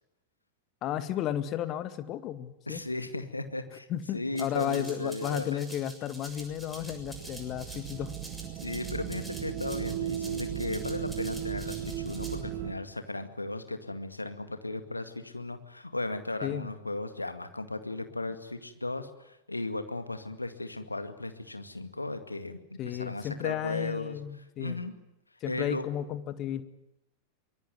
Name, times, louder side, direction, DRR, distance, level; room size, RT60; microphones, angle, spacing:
voice 1, 0.8-2.8 3.9-8.1 16.4-16.7 22.8-24.8 25.4-26.6, left 11 dB, 35° left, 11 dB, 1.9 m, -33 dB
voice 2, 2.7-5.6 8.6-24.2 24.6-24.9 25.5-25.9, left 2 dB, 85° left, 8 dB, 2.1 m, -36 dB
Rattle (instrument), 4.4-12.4, right 2 dB, 5° right, 6.9 m, -47 dB
sound 1, 6.3-12.7, right 10 dB, 40° right, 1.7 m, -36 dB
24.5 x 22.0 x 9.5 m, 0.86 s
figure-of-eight pair, 90°, 0 cm